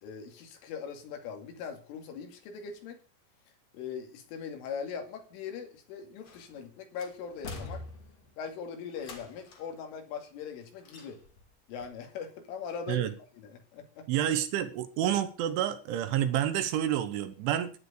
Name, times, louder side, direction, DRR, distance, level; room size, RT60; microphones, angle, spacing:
voice 1, 0.0-3.0 3.7-7.8 8.4-11.2 11.7-13.1 13.3-14.3, left 6 dB, 75° left, 4.8 m, -40 dB
sound 1, 6.2-6.6 7.0-8.4 9.0-9.8 10.8-11.5 11.8-11.9, left 3 dB, 40° left, 2.6 m, -44 dB
voice 2, 14.1-17.7, right 11 dB, 75° right, 3.5 m, -29 dB
11.5 x 10.5 x 6.7 m
omnidirectional pair, 5.8 m